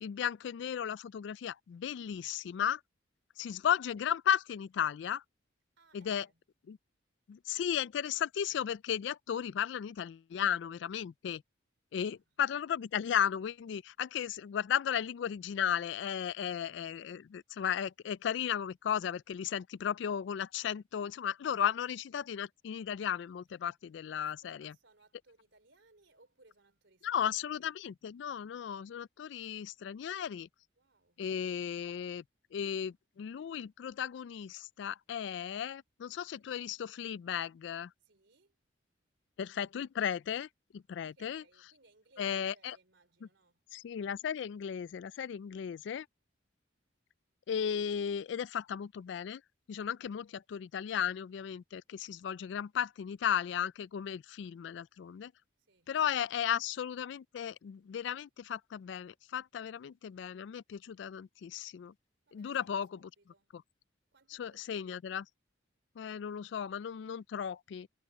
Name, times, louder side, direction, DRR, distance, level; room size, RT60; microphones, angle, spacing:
voice 1, 0.0-2.8 3.4-5.2 5.9-6.3 6.7-6.8 7.3-11.4 11.9-24.7 27.0-30.5 31.2-32.2 32.5-37.9 39.4-40.5 40.7-41.4 42.2-42.8 43.7-46.1 47.5-49.4 49.7-55.3 55.9-61.9 62.3-63.1 63.5-63.6 64.3-65.2 66.0-67.9, left 8 dB, 65° left, 0.3 m, -35 dB
voice 2, 5.8-6.4 11.9-12.3 24.1-27.7 30.8-31.3 36.1-36.5 38.0-38.6 40.1-40.4 40.9-43.6 45.2-45.4 55.6-55.9 62.3-63.5 64.1-64.9, right 3 dB, 70° right, 3.4 m, -67 dB
head